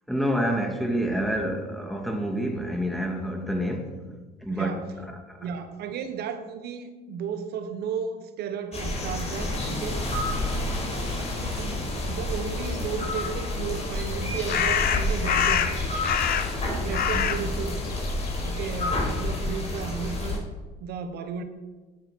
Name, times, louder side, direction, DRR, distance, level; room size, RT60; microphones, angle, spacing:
voice 1, 0.1-4.0 4.4-5.5 17.1-17.5, equal, ahead, 3 dB, 2.1 m, -28 dB
voice 2, 4.5-4.8 5.4-10.0 11.3-15.9 16.8-17.9 18.4-20.5 20.8-21.4, right 6 dB, 65° right, 8 dB, 1.2 m, -34 dB
sound 1, 8.7-20.4, left 2 dB, 35° left, 4.9 m, -29 dB
sound 2, 14.5-16.7 16.9-19.1, left 9 dB, 55° left, 1.1 m, -26 dB
12.0 x 9.1 x 6.2 m, 1.3 s
cardioid pair, 110°, 18 cm